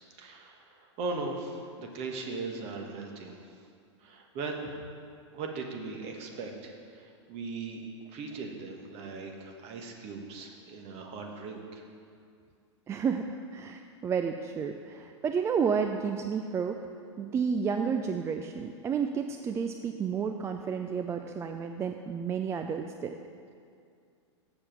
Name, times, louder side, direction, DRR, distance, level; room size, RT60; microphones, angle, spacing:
voice 1, 0.2-3.4 4.0-4.7 5.3-7.9 8.1-11.8, right 3 dB, 45° right, 2 dB, 1.4 m, -39 dB
voice 2, 12.9-16.8 17.2-23.2, right 6 dB, 20° right, 5 dB, 0.3 m, -31 dB
7.4 x 7.2 x 5.8 m, 2.3 s
hypercardioid pair, 105°, 15 cm